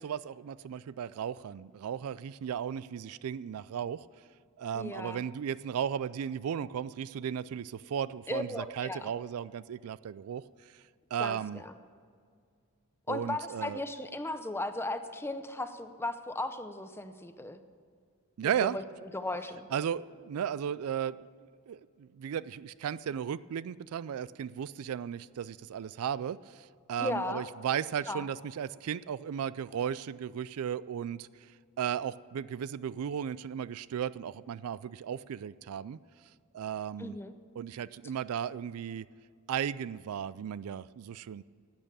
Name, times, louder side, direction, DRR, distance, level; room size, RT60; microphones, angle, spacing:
voice 1, 0.0-4.0 4.6-10.8 11.1-11.6 13.1-13.8 18.4-18.8 19.7-21.2 21.7-31.5 31.8-36.0 36.5-37.2 37.6-39.1 39.5-41.4, right 8 dB, 70° right, 18 dB, 0.3 m, -35 dB
voice 2, 4.7-5.2 8.3-9.1 11.2-11.7 13.1-17.6 18.4-19.7 27.0-27.4 28.1-28.3 37.0-37.3, left 2 dB, 10° left, 9 dB, 0.7 m, -36 dB
12.0 x 8.8 x 8.9 m, 2.1 s
head